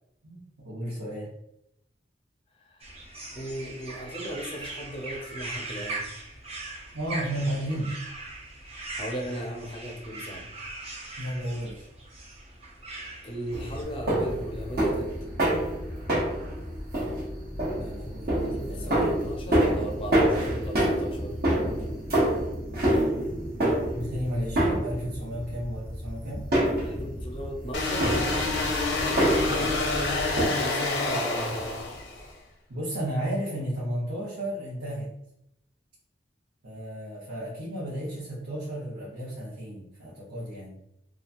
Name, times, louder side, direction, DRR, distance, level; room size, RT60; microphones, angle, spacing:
voice 1, 0.2-1.3 6.9-8.0 11.2-11.9 17.8-18.3 18.6-19.3 23.9-26.5 32.7-35.1 36.6-40.8, equal, 85° right, -8 dB, 0.9 m, -33 dB
sound 1, 2.8-13.8, right 2 dB, 35° right, 0.5 m, -40 dB
voice 2, 3.3-6.1 8.7-10.5 13.2-15.3 18.4-21.4 26.8-29.8 30.4-31.9, right 1 dB, 30° left, 1 dB, 0.5 m, -37 dB
sound 2, 13.5-30.5, right 1 dB, 55° right, 0.8 m, -27 dB
sound 3, 27.7-32.3, left 2 dB, 85° left, 0.7 m, -28 dB
2.9 x 2.3 x 2.5 m, 0.80 s
head